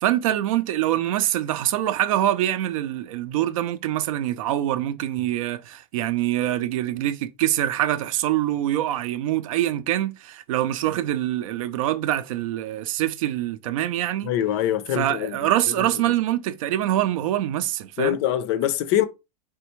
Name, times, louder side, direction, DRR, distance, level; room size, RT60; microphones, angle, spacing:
voice 1, 0.0-14.3 14.9-18.2, right 13 dB, 60° right, 0.5 m, -24 dB
voice 2, 14.2-15.4 18.0-19.1, left 11 dB, 40° left, 0.5 m, -23 dB
4.4 x 3.3 x 3.1 m
supercardioid pair, 170°, 20 cm